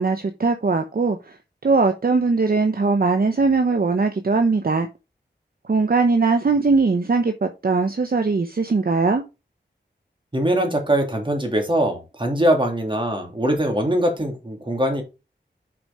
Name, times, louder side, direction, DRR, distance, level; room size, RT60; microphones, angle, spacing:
voice 1, 0.0-1.4 1.6-4.9 5.7-9.2, right 4 dB, 55° right, 0.9 m, -20 dB
voice 2, 10.3-15.0, right 1 dB, 25° right, 3.0 m, -22 dB
6.1 x 5.0 x 5.4 m
wide cardioid pair, 60°, 19 cm